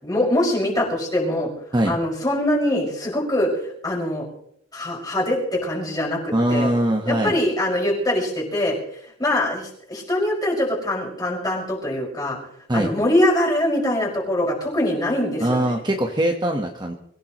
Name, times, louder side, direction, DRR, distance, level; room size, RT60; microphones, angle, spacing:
voice 1, 0.0-1.5 1.8-3.5 3.8-4.3 4.7-6.7 7.1-8.8 9.2-12.4 12.7-15.8, left 1 dB, 20° left, -3 dB, 5.7 m, -23 dB
voice 2, 6.3-7.4 12.7-12.9 15.4-16.9, right 1 dB, 20° right, 2 dB, 1.3 m, -22 dB
24.5 x 16.0 x 3.1 m, 0.70 s
head